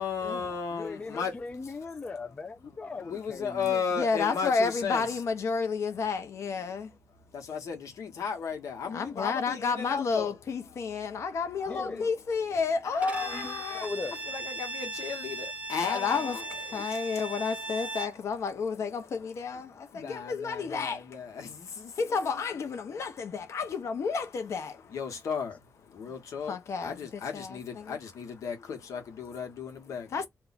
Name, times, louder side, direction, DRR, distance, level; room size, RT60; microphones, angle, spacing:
voice 1, 0.0-1.3 2.0-2.2 2.9-5.2 7.3-10.3 11.6-12.1 12.8-13.9 14.3-17.2 19.9-22.0 24.9-25.6 25.9-26.6 26.8-30.1, left 6 dB, 80° left, 1.1 m, -35 dB
voice 2, 0.7-3.9 11.7-12.1 13.2-14.2, left 3 dB, 25° left, 0.3 m, -39 dB
voice 3, 4.0-6.9 8.8-13.5 15.8-21.2 21.9-24.9 26.1-26.2 26.4-28.0 30.1-30.3, left 5 dB, 60° left, 0.8 m, -31 dB
Bowed string instrument, 13.0-18.2, right 2 dB, 25° right, 0.6 m, -38 dB
2.6 x 2.3 x 4.0 m
wide cardioid pair, 145°, 5 cm